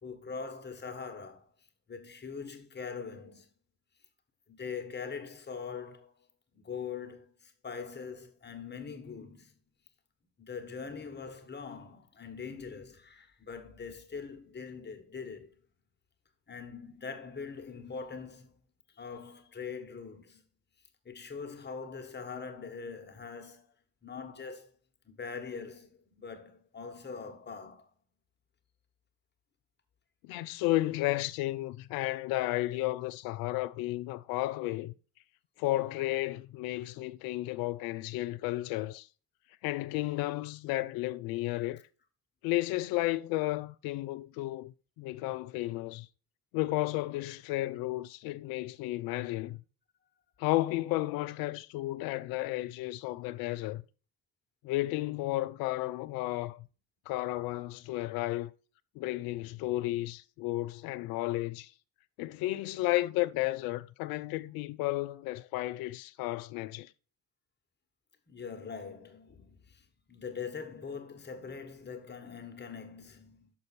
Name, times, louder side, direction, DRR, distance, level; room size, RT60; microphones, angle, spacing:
voice 1, 0.0-1.5 1.9-3.5 4.5-6.3 6.5-9.5 10.4-15.5 16.5-18.5 18.9-20.4 21.0-23.7 24.0-24.7 25.0-27.9 68.3-73.5, left 5 dB, 20° left, 1.4 m, -42 dB
voice 2, 30.2-34.9 35.6-39.1 39.6-41.8 42.4-46.1 46.5-49.6 50.4-53.8 54.6-56.7 57.1-58.5 59.0-61.7 62.2-66.9, left 18 dB, 50° left, 0.5 m, -33 dB
6.4 x 5.4 x 4.1 m
figure-of-eight pair, 55°, 47 cm